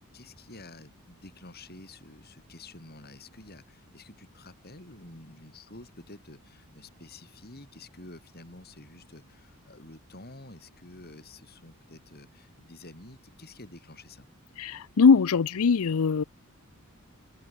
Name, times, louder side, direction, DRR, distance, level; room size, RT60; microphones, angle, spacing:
voice 1, 0.0-14.3, left 2 dB, 45° left, 5.2 m, -49 dB
voice 2, 14.6-16.2, left 5 dB, 70° left, 0.5 m, -21 dB
open air
head